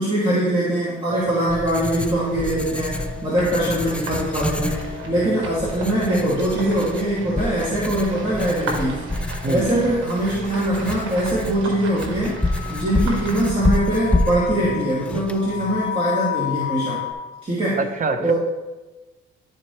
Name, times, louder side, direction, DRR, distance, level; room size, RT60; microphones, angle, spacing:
voice 1, 0.0-9.1 9.5-12.4 12.7-17.0 17.4-17.8 18.2-18.3, right 1 dB, 25° right, -9 dB, 2.6 m, -22 dB
Writing, 1.1-15.9, left 1 dB, 5° left, 0.5 m, -28 dB
sound 1, 2.0-13.6, right 2 dB, 80° right, 1.5 m, -36 dB
sound 2, 2.4-3.7 4.2-5.9 6.3-7.4 8.5-10.2 10.8-10.9 11.8-12.0 12.3-17.1, left 12 dB, 35° left, 1.5 m, -34 dB
voice 2, 17.8-18.3, right 3 dB, 40° right, 7 dB, 0.9 m, -24 dB
12.0 x 4.4 x 3.3 m, 1.2 s
cardioid pair, 90°, 20 cm